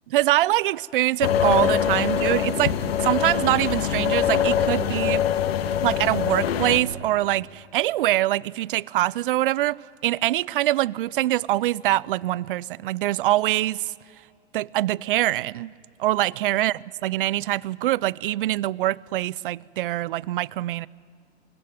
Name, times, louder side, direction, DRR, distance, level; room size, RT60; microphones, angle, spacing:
voice 1, 0.1-5.2 5.8-9.8 10.0-13.9 14.5-15.7 16.0-16.7 17.0-20.9, right 15 dB, 55° right, 0.6 m, -24 dB
sound 1, 1.2-6.8, left 8 dB, 65° left, 1.8 m, -23 dB
25.0 x 22.0 x 9.4 m
hypercardioid pair, 115°, 33 cm